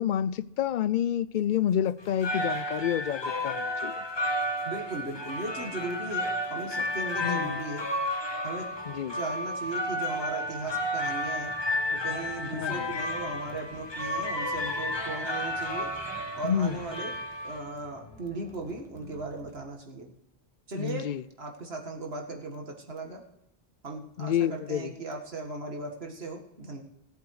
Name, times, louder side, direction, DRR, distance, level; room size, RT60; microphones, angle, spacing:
voice 1, 0.0-4.0 7.2-7.6 8.9-9.2 12.5-12.9 16.4-16.8 20.8-21.2 24.2-24.9, left 9 dB, 60° left, 0.6 m, -29 dB
sound 1, 1.3-19.6, right 1 dB, 5° right, 1.9 m, -55 dB
sound 2, 2.0-17.9, left 1 dB, 25° left, 1.0 m, -32 dB
voice 2, 4.7-7.9 8.4-8.7 9.1-11.5 11.9-15.9 16.4-17.1 17.4-20.1 20.7-21.1 21.4-23.2 23.8-26.8, right 2 dB, 80° right, 2.1 m, -37 dB
18.0 x 8.3 x 4.8 m
omnidirectional pair, 1.0 m